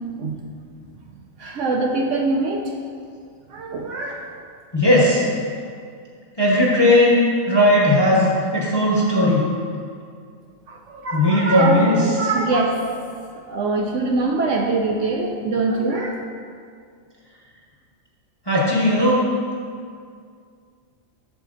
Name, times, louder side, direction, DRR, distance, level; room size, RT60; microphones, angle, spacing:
voice 1, 1.4-2.6 3.5-4.2 10.7-12.8 13.5-16.2, right 3 dB, 70° right, 1 dB, 0.9 m, -23 dB
voice 2, 4.7-5.3 6.4-8.3 8.5-9.5 11.1-12.0 18.5-19.2, left 1 dB, 20° left, -5 dB, 0.9 m, -17 dB
7.4 x 7.0 x 2.5 m, 2.2 s
omnidirectional pair, 1.5 m